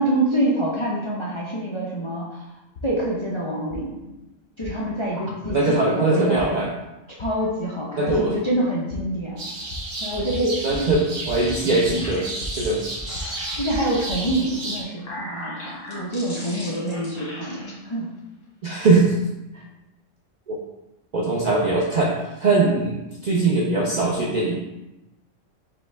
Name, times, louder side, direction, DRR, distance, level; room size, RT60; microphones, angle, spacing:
voice 1, 0.0-2.5 2.8-4.0 4.6-6.7 7.2-9.5 10.0-10.9 11.6-11.9 13.6-18.1 19.5-19.6, right 1 dB, 40° left, -5 dB, 0.4 m, -26 dB
sound 1, 2.8-2.9 3.7-3.8 4.6-4.7 5.4-5.5 6.4-6.5 7.2-7.3 8.1-8.2 8.9-9.0 9.7-9.8 10.1-10.4 10.7-11.0 11.2-11.6 11.8-12.7 13.0-14.4, left 1 dB, 65° left, 0.8 m, -35 dB
voice 2, 5.5-6.7 8.0-8.3 10.6-12.3 12.5-12.8 18.6-19.2 20.5-20.6 21.1-23.0 23.2-24.5, right 3 dB, 60° right, -3 dB, 0.4 m, -21 dB
sound 2, 9.4-14.8, right 2 dB, 75° right, 1.2 m, -33 dB
sound 3, 11.9-14.0 14.7-17.7, left 1 dB, 90° left, 1.6 m, -38 dB
5.1 x 2.3 x 3.2 m, 0.97 s
omnidirectional pair, 1.3 m